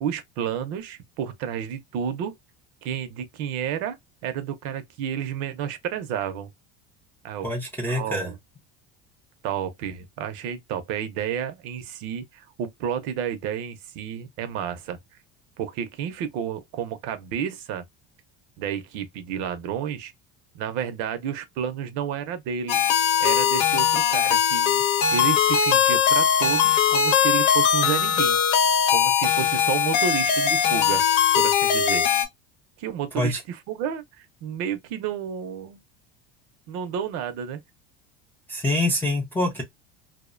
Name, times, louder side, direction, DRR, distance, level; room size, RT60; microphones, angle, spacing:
voice 1, 0.0-2.3 2.8-4.0 4.2-6.5 7.2-7.5 7.9-8.3 9.4-15.0 15.6-17.8 18.6-20.1 20.5-22.8 23.2-28.4 28.9-31.0 31.4-32.1 32.8-33.3 33.7-35.8 36.7-37.6, right 8 dB, 55° right, 0.5 m, -31 dB
voice 2, 7.4-8.3 33.2-33.4 38.5-39.6, left 1 dB, 5° left, 0.3 m, -25 dB
sound 1, 22.7-32.3, left 8 dB, 85° left, 0.8 m, -20 dB
2.5 x 2.1 x 2.4 m
cardioid pair, 180°, 30 cm